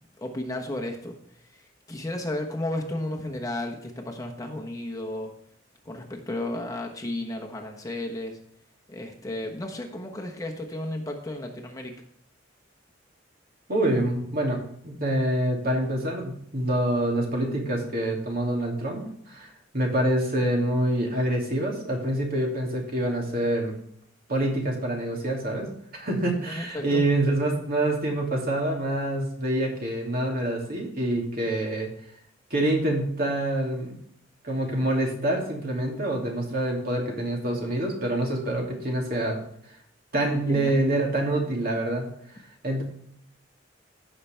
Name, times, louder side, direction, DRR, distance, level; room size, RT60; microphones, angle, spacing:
voice 1, 0.2-1.2 1.5-5.3 5.8-8.4 8.9-11.9 26.5-27.1 40.5-40.7, left 1 dB, 20° left, 2 dB, 1.2 m, -33 dB
voice 2, 13.7-14.6 14.8-19.5 19.7-23.7 24.3-25.7 25.9-31.9 32.5-33.9 34.4-39.4 40.1-42.0 42.6-42.8, right 1 dB, 50° right, 0 dB, 2.6 m, -26 dB
15.5 x 5.9 x 3.4 m, 0.68 s
head